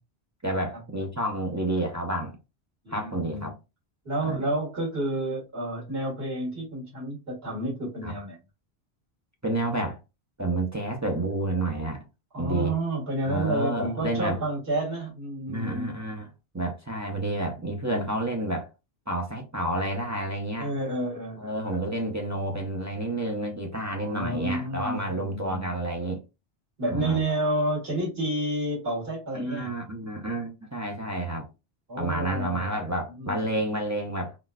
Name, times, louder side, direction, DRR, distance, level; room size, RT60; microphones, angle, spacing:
voice 1, 0.4-2.4 2.9-3.5 4.2-4.5 8.0-8.1 9.4-10.0 10.4-12.1 12.4-12.7 13.2-14.4 15.5-16.3 16.5-18.7 19.1-20.7 21.4-26.2 26.9-27.3 29.3-31.5 32.0-34.4, right 1 dB, 20° right, 0.5 m, -30 dB
voice 2, 2.8-3.5 4.1-8.4 12.3-16.0 20.6-21.9 23.9-25.7 26.8-29.8 31.9-32.8 33.2-33.6, right 1 dB, 65° right, 1.9 m, -30 dB
3.8 x 2.3 x 2.3 m
omnidirectional pair, 1.1 m